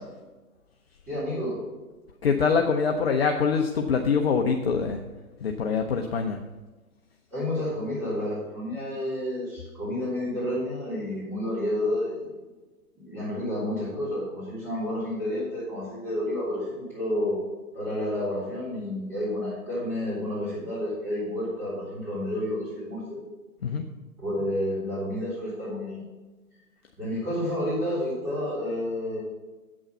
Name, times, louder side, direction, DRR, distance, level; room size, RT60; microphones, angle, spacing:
voice 1, 1.1-1.6 7.3-12.3 13.0-17.4 17.7-23.2 24.2-26.0 27.0-29.2, left 1 dB, 15° right, -12 dB, 4.1 m, -30 dB
voice 2, 2.2-5.0 5.4-6.4 23.6-23.8, left 5 dB, 40° left, 3 dB, 0.8 m, -24 dB
8.8 x 8.1 x 6.0 m, 1.2 s
hypercardioid pair, 150°, 45 cm